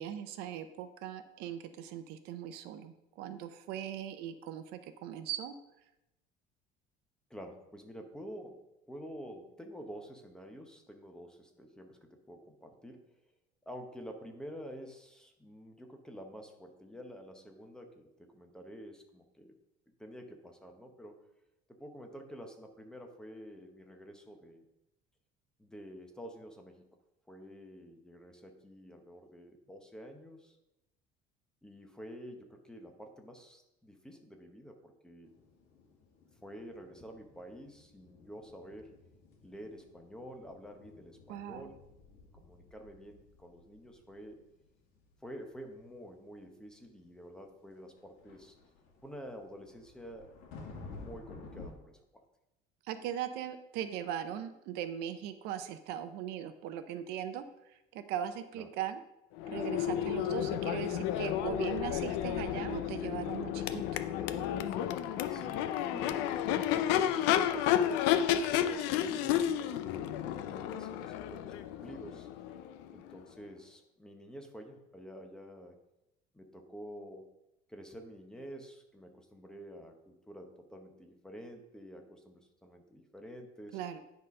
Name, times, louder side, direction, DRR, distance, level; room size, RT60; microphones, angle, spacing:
voice 1, 0.0-5.5 41.3-41.7 52.9-57.4 57.9-59.0 59.5-64.0 83.7-84.0, right 10 dB, 75° right, 10 dB, 0.7 m, -39 dB
voice 2, 7.3-8.6 8.9-13.0 13.6-19.5 20.0-21.2 21.7-24.6 25.6-26.9 27.3-30.6 31.6-35.3 36.4-38.9 39.4-41.7 42.3-44.4 45.2-48.6 49.0-50.3 50.8-52.2 58.5-58.7 65.3-72.3 72.9-75.8 76.3-77.3 77.7-83.8, equal, 5° left, 4 dB, 0.8 m, -49 dB
sound 1, 35.2-51.7, left 3 dB, 70° left, 2.0 m, -54 dB
Crowd / Race car auto racing / Accelerating revving vroom, 59.4-73.2, left 10 dB, 85° left, 0.5 m, -32 dB
9.9 x 4.1 x 5.3 m, 0.90 s
cardioid pair, 170°, 17 cm